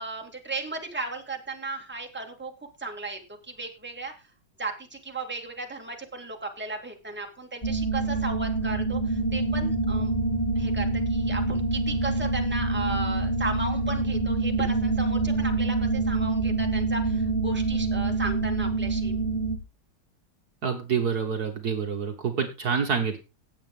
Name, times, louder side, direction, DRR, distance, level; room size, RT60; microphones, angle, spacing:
voice 1, 0.0-2.5 2.8-3.2 3.5-4.1 4.6-10.1 10.6-19.2, right 3 dB, 5° right, 3 dB, 2.2 m, -35 dB
sound 1, 7.6-19.6, right 3 dB, 15° left, 1.8 m, -26 dB
voice 2, 20.6-23.2, right 6 dB, 55° right, 4 dB, 1.8 m, -27 dB
17.0 x 7.8 x 3.8 m, 0.29 s
omnidirectional pair, 2.2 m